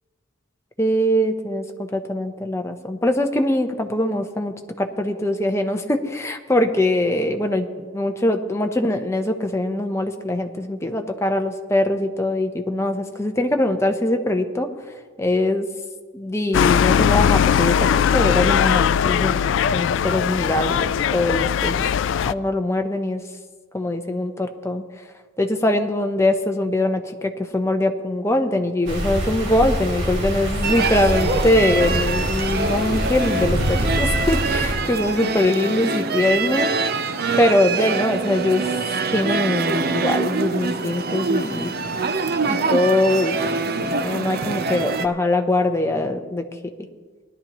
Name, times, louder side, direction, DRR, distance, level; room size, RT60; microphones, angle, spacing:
voice 1, 0.8-1.6 1.9-14.7 15.2-15.7 16.1-19.4 19.7-21.8 22.2-23.2 23.7-24.8 25.4-36.7 37.4-38.7 39.1-41.7 42.4-46.4, left 1 dB, 15° left, 5 dB, 0.8 m, -22 dB
sound 1, 16.5-22.3, left 8 dB, 65° left, 0.3 m, -19 dB
sound 2, 28.9-34.7, equal, 75° right, 3.8 m, -25 dB
sound 3, 30.6-45.1, right 4 dB, 50° right, 0.6 m, -25 dB
19.0 x 11.5 x 3.0 m, 1.4 s
head